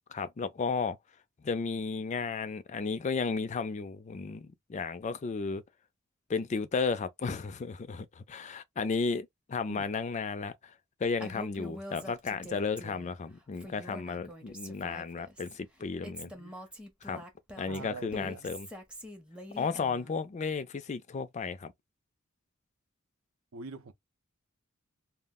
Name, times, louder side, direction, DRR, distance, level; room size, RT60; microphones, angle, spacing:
voice 1, 0.1-1.0 1.4-5.6 6.3-10.7 11.0-16.3 17.0-17.2 17.6-18.7 19.6-21.7, left 4 dB, 35° left, 0.4 m, -33 dB
Female speech woman speaking, 11.2-13.2 13.6-15.6 16.0-20.2, equal, 5° right, 0.6 m, -45 dB
voice 2, 16.2-16.5 17.6-18.5 23.5-23.9, right 4 dB, 75° right, 0.5 m, -44 dB
2.3 x 2.1 x 3.5 m
head